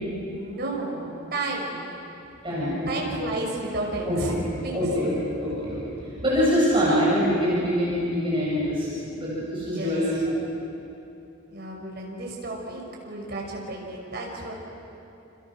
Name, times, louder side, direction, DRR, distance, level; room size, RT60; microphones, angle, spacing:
voice 1, 0.2-1.8 2.9-4.3 4.6-4.8 6.9-7.0 9.7-10.0 11.5-14.5, right 2 dB, 45° right, -1 dB, 5.8 m, -32 dB
voice 2, 2.4-3.2 4.0-4.2 4.7-8.9 9.1-10.1, equal, 25° right, -8 dB, 7.1 m, -24 dB
29.5 x 29.5 x 6.3 m, 2.9 s
head